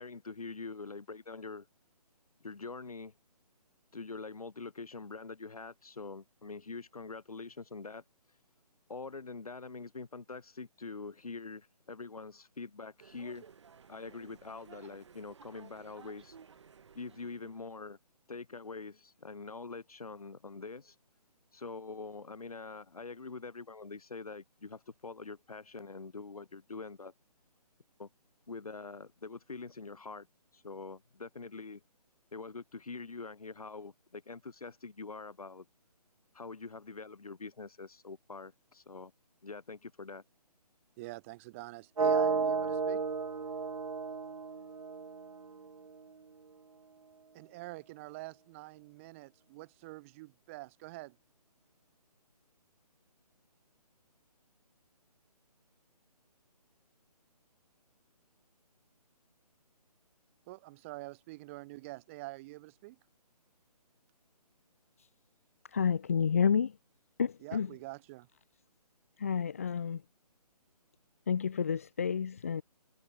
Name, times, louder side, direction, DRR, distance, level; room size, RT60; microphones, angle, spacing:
voice 1, 0.0-1.7 2.4-3.1 3.9-8.0 8.9-13.4 13.9-16.4 16.9-18.0 18.3-21.0 21.5-27.1 28.0-28.1 28.5-30.3 30.5-31.8 32.3-35.7 36.3-39.1 39.4-40.2, left 4 dB, 60° left, 2.4 m, -44 dB
sound 1, 13.0-17.7, right 6 dB, 45° right, 3.2 m, -56 dB
voice 2, 41.0-43.0 47.3-51.2 60.5-63.0 67.4-68.3, right 21 dB, 20° right, 2.6 m, -46 dB
sound 2, 42.0-45.9, right 5 dB, 60° right, 0.8 m, -32 dB
voice 3, 65.7-66.8 67.2-67.7 69.2-70.0 71.3-72.6, left 7 dB, 20° left, 0.4 m, -30 dB
figure-of-eight pair, 145°, 21 cm